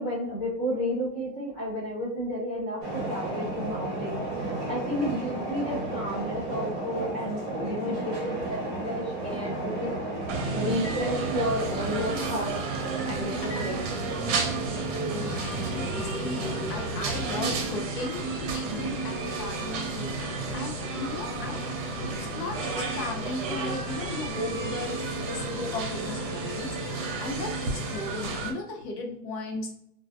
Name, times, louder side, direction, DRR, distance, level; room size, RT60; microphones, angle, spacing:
voice 1, 0.0-9.9 10.2-12.5 13.0-13.9 18.6-19.0, equal, 10° left, -9 dB, 0.3 m, -32 dB
sound 1, 2.8-17.7, right 2 dB, 30° right, 0.9 m, -34 dB
sound 2, 10.3-28.5, right 4 dB, 50° right, 0.7 m, -33 dB
sound 3, 10.5-28.5, left 4 dB, 90° left, 1.1 m, -41 dB
voice 2, 15.1-21.6 22.0-29.7, left 2 dB, 65° left, 2 dB, 0.9 m, -36 dB
2.3 x 2.2 x 2.4 m, 0.75 s
supercardioid pair, 145°, 49 cm